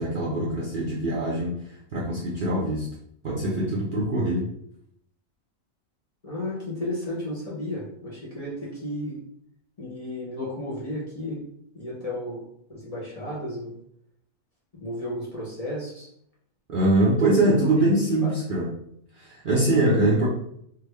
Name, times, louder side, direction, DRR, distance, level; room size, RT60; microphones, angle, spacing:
voice 1, 0.0-2.9 3.2-4.5 16.7-18.7 19.1-20.3, right 1 dB, 50° right, -6 dB, 0.6 m, -23 dB
voice 2, 6.2-9.2 9.8-11.4 11.7-12.4 12.7-13.7 14.8-16.1 17.0-17.5 17.8-17.9 18.2-18.3, left 1 dB, 30° left, -6 dB, 0.9 m, -33 dB
3.5 x 2.1 x 3.3 m, 0.70 s
omnidirectional pair, 1.4 m